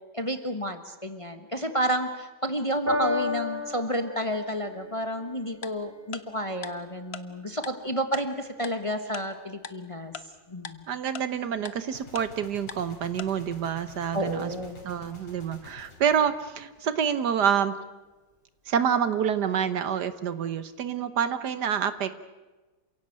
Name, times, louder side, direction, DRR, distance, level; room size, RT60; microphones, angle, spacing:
voice 1, 0.1-10.1 10.5-10.8 14.1-14.8, right 1 dB, 20° left, 8 dB, 1.2 m, -31 dB
Piano, 2.9-9.4 10.3-10.4, left 3 dB, 30° right, 4.5 m, -35 dB
Tick-tock, 5.6-5.7 6.1-6.2 6.6-6.7 7.1-7.2 7.6-7.7 8.1-8.2 8.6-8.7 9.1-9.2 9.6-9.7 10.1-10.2 10.6-10.7 11.1-11.2 11.6-11.7 12.1-12.2 12.7-12.8 13.2-13.3, left 7 dB, 40° left, 1.0 m, -37 dB
voice 2, 10.9-14.5 14.8-17.7 18.7-22.1, right 8 dB, 65° right, 13 dB, 1.5 m, -27 dB
Gunshot gunfire, 11.9-17.2, left 2 dB, 75° left, 4.3 m, -49 dB
28.0 x 16.5 x 8.7 m, 1.2 s
omnidirectional pair, 2.0 m